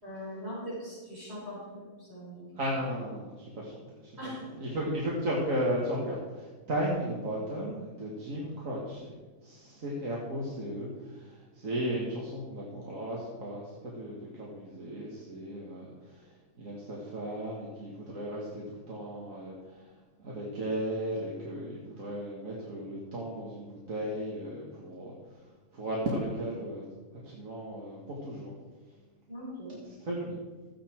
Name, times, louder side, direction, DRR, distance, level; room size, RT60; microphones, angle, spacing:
voice 1, 0.0-2.4 4.2-4.4 29.3-29.8, equal, 50° right, -8 dB, 5.5 m, -41 dB
voice 2, 2.6-4.2 4.6-9.1 9.4-16.3 16.6-19.9 20.2-25.1 25.7-26.8 27.2-28.5 30.0-30.4, equal, 70° right, -4 dB, 2.3 m, -35 dB
14.0 x 10.0 x 4.6 m, 1.3 s
omnidirectional pair, 1.4 m